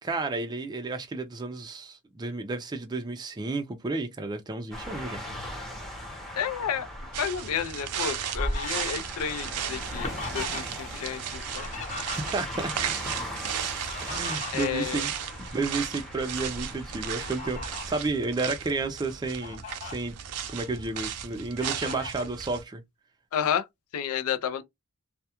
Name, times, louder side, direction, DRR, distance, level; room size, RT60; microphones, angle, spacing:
voice 1, 0.0-5.2 12.0-12.7 14.0-15.1 15.4-20.2 20.5-22.8, right 3 dB, 20° right, 0.3 m, -32 dB
sound 1, 4.7-17.9, left 1 dB, ahead, 0.7 m, -40 dB
voice 2, 6.4-6.9 7.2-11.7 14.5-15.1 23.3-23.7 23.9-24.6, left 8 dB, 70° left, 0.4 m, -31 dB
sound 2, 7.1-22.6, right 9 dB, 85° right, 0.5 m, -36 dB
Fowl, 7.6-10.9 11.2-12.7 13.6-15.7 16.2-16.4 17.0-18.1 18.7-18.8 19.2-19.9 20.5-21.2 21.6-22.3, left 2 dB, 35° left, 0.9 m, -38 dB
2.3 x 2.1 x 2.8 m
head